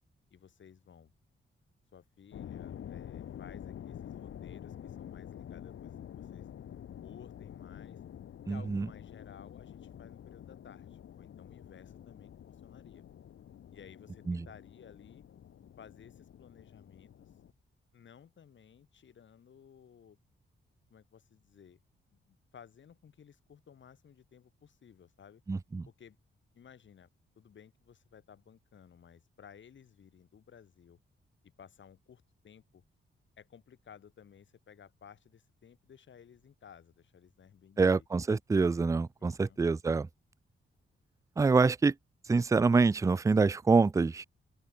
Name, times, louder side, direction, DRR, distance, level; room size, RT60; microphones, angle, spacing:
voice 1, 0.3-1.1 1.9-6.5 7.0-8.0 8.5-13.0 13.7-15.2 15.8-17.3 17.9-20.2 20.9-21.8 22.1-25.4 25.9-26.2 26.5-27.1 27.4-31.0 31.4-32.8 33.4-38.0 39.2-39.6, left 8 dB, 65° left, 7.7 m, -56 dB
sound 1, 2.3-17.5, left 9 dB, 90° left, 5.6 m, -48 dB
voice 2, 8.5-8.9 14.3-14.5 25.5-25.8 37.8-40.1 41.4-41.9 42.3-44.2, right 4 dB, 15° right, 0.4 m, -26 dB
open air
wide cardioid pair, 145°, 21 cm